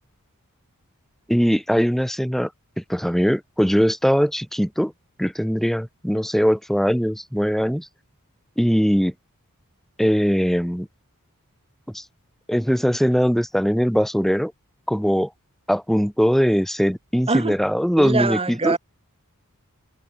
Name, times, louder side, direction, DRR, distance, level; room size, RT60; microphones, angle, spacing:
voice 1, 1.3-2.5 2.8-4.9 5.2-7.9 8.6-9.1 10.0-10.9 11.9-12.0 12.5-14.5 14.9-15.3 15.7-18.8, equal, ahead, 3.6 m, -21 dB
voice 2, 18.0-18.8, right 3 dB, 25° right, 1.9 m, -23 dB
head